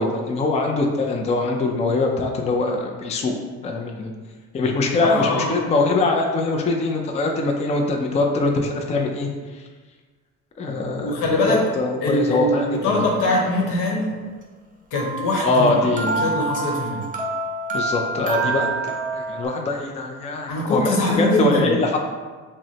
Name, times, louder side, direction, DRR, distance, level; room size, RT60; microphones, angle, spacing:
voice 1, 0.0-3.3 3.6-4.1 4.5-9.3 10.6-11.2 11.5-13.0 15.4-16.3 17.7-22.0, left 3 dB, 20° left, 2 dB, 0.4 m, -23 dB
voice 2, 5.0-5.6 11.0-11.7 12.0-14.2 14.9-15.9 16.2-17.1 20.5-21.7, left 2 dB, 85° left, -1 dB, 1.0 m, -22 dB
sound 1, 12.9-13.8 15.0-19.5, right 3 dB, 25° right, 0.6 m, -27 dB
6.0 x 2.1 x 2.8 m, 1.4 s
cardioid pair, 110°, 32 cm